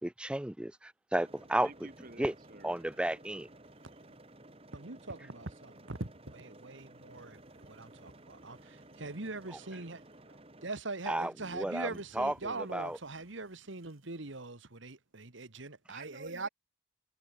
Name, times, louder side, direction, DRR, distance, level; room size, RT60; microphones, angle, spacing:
voice 1, 0.0-1.7 2.2-2.3 2.6-3.5 11.1-11.9 12.2-13.0, right 1 dB, 5° right, 0.3 m, -33 dB
sound 1, 1.2-10.7, right 1 dB, 30° right, 2.3 m, -55 dB
sound 2, 1.2-14.6, right 1 dB, 85° right, 5.9 m, -64 dB
voice 2, 1.6-2.8 15.9-16.5, right 2 dB, 45° right, 3.0 m, -50 dB
voice 3, 4.7-16.5, right 3 dB, 70° right, 1.7 m, -42 dB
head